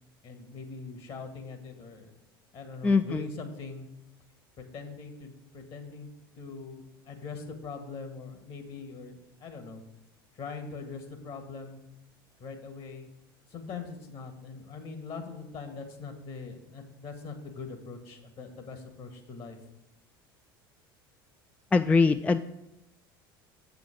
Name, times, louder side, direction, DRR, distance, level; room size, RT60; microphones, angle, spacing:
voice 1, 0.2-2.1 2.5-3.9 4.6-6.1 6.4-9.8 10.3-11.8 12.4-13.1 13.5-19.6, left 4 dB, 50° left, 5 dB, 1.8 m, -42 dB
voice 2, 2.8-3.2 21.7-22.4, left 4 dB, 10° left, 10 dB, 0.3 m, -22 dB
8.0 x 6.9 x 5.0 m, 0.89 s
hypercardioid pair, 75°, 12 cm